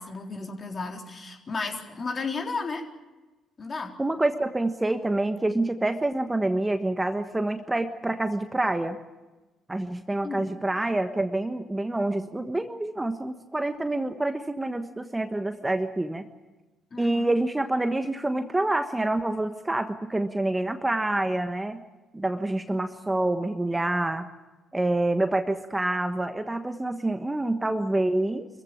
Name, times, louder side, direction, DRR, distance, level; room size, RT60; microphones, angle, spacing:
voice 1, 0.0-2.8 3.6-3.9 10.2-10.5 16.9-17.3, left 4 dB, 35° left, 2 dB, 3.8 m, -33 dB
voice 2, 4.0-9.0 9.7-16.3 17.0-21.8 22.1-24.3 24.7-28.5, right 2 dB, 15° right, 8 dB, 1.3 m, -27 dB
25.0 x 15.5 x 8.8 m, 1.1 s
hypercardioid pair, 50°, 0 cm